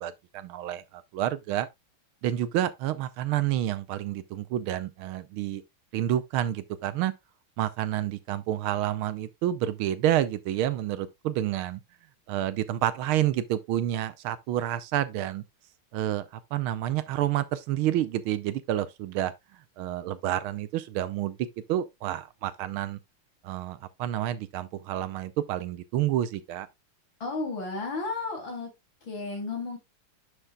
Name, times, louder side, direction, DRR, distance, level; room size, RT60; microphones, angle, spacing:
voice 1, 0.0-1.7 2.2-5.6 5.9-7.1 7.6-11.8 12.3-15.4 15.9-16.2 16.5-19.3 19.8-23.0 23.4-26.7, right 12 dB, 85° right, 1.6 m, -29 dB
voice 2, 27.2-28.7 29.0-29.8, left 3 dB, 65° left, 4.2 m, -33 dB
10.0 x 6.3 x 2.3 m
omnidirectional pair, 2.3 m